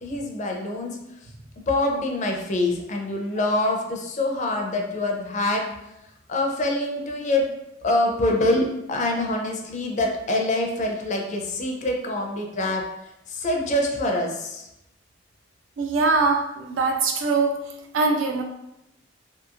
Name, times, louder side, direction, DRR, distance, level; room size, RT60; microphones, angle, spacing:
voice 1, 0.0-1.0 1.7-5.6 6.3-7.4 7.8-12.8 13.3-14.7, left 1 dB, 40° left, 1 dB, 0.4 m, -25 dB
voice 2, 15.8-17.6 17.9-18.4, right 3 dB, 80° right, 4 dB, 0.4 m, -22 dB
2.8 x 2.6 x 2.4 m, 0.87 s
head